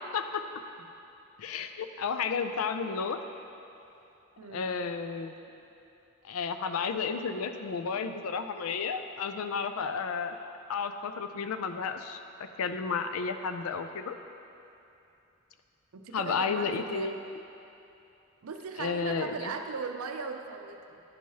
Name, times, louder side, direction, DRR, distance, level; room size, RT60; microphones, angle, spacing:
voice 1, 1.4-3.2 4.5-5.4 6.2-10.4 10.7-14.2 16.1-17.2 18.8-19.5, left 5 dB, 85° left, 8 dB, 0.4 m, -32 dB
voice 2, 4.4-4.7 15.9-17.2 18.4-21.0, right 5 dB, 90° right, 5 dB, 0.5 m, -38 dB
11.0 x 4.6 x 2.8 m, 2.8 s
head